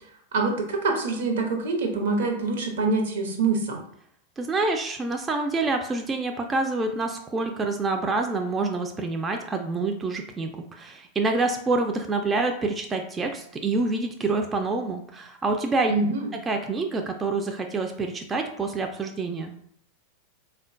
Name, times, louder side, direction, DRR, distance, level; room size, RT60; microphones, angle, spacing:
voice 1, 0.3-3.8 15.9-16.3, right 3 dB, 70° right, 3 dB, 0.7 m, -25 dB
voice 2, 4.4-15.9 16.5-19.5, right 3 dB, 20° right, 4 dB, 0.3 m, -27 dB
3.6 x 2.2 x 2.5 m, 0.66 s
hypercardioid pair, 95°, 0 cm